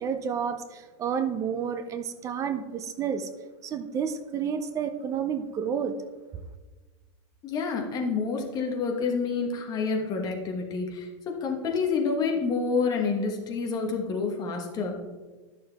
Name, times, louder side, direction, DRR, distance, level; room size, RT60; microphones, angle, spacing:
voice 1, 0.0-3.3 3.6-5.9, right 7 dB, 20° right, 11 dB, 0.5 m, -30 dB
voice 2, 7.4-14.9, left 4 dB, 25° left, 1 dB, 1.3 m, -28 dB
11.5 x 6.5 x 3.5 m, 1.3 s
supercardioid pair, 160°, 16 cm